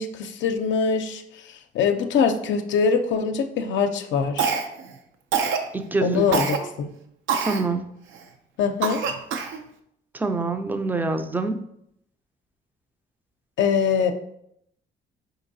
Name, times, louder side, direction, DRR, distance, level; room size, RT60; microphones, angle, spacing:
voice 1, 0.0-4.5 6.0-6.9 8.6-9.0 13.6-14.1, left 6 dB, 70° left, 6 dB, 0.4 m, -23 dB
Cough, 4.4-4.9 5.3-5.7 6.3-6.6 7.3-7.6 8.2-8.3 8.8-9.6, right 6 dB, 90° right, 0.5 m, -24 dB
voice 2, 5.7-6.3 6.6-6.7 7.4-7.9 10.1-11.6, right 3 dB, 10° right, 8 dB, 0.4 m, -26 dB
4.6 x 3.9 x 2.6 m, 0.75 s
cardioid pair, 90°, 20 cm